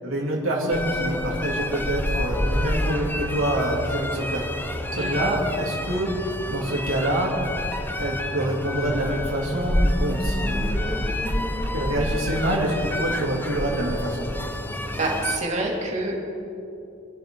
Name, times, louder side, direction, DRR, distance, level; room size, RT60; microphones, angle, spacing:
voice 1, 0.0-4.4 4.9-6.1 6.5-7.3 8.0-11.3 11.7-14.3, right 1 dB, 85° right, -4 dB, 2.9 m, -26 dB
sound 1, 0.7-15.4, left 1 dB, 10° left, 0.8 m, -28 dB
voice 2, 15.0-16.2, right 2 dB, 35° right, -2 dB, 2.8 m, -27 dB
26.5 x 12.0 x 3.9 m, 2.8 s
head